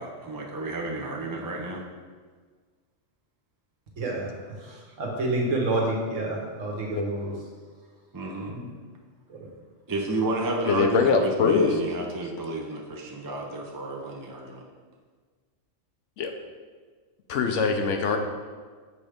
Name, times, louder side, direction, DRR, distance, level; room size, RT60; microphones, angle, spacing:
voice 1, 0.0-1.8 8.1-8.5 9.9-14.6, right 2 dB, 30° right, -1 dB, 0.4 m, -31 dB
voice 2, 4.0-7.3 8.5-8.7 9.3-9.5, right 2 dB, 75° right, -1 dB, 1.5 m, -29 dB
voice 3, 10.7-11.7 16.2-16.3 17.3-18.2, left 5 dB, 70° left, 5 dB, 0.9 m, -22 dB
6.9 x 3.3 x 5.0 m, 1.5 s
omnidirectional pair, 1.3 m